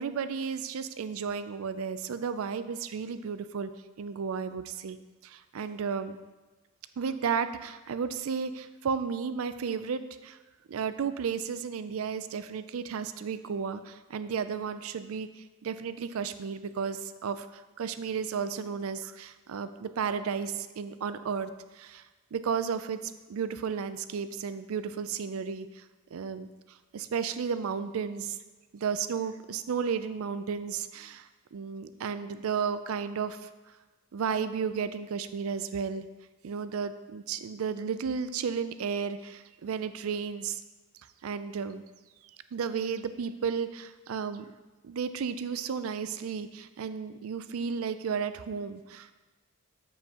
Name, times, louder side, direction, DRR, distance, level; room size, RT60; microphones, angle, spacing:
voice 1, 0.0-3.7 4.0-5.0 5.2-6.2 7.0-10.4 10.7-22.0 22.3-25.8 26.1-28.4 28.7-33.5 34.1-36.1 36.4-40.6 41.2-41.8 42.5-44.5 44.8-49.1, right 6 dB, 85° right, 12 dB, 0.4 m, -33 dB
7.4 x 7.1 x 2.9 m, 1.2 s
head